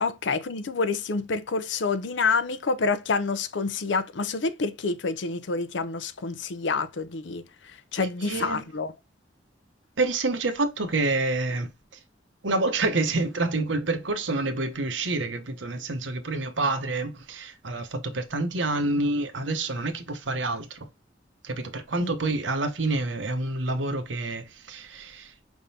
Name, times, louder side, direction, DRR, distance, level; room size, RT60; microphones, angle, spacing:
voice 1, 0.0-8.9 22.0-22.1, left 4 dB, 75° left, 0.6 m, -28 dB
voice 2, 8.0-8.6 10.0-12.0 12.4-20.9 21.4-25.3, right 2 dB, 80° right, 0.9 m, -28 dB
5.2 x 3.6 x 2.7 m
head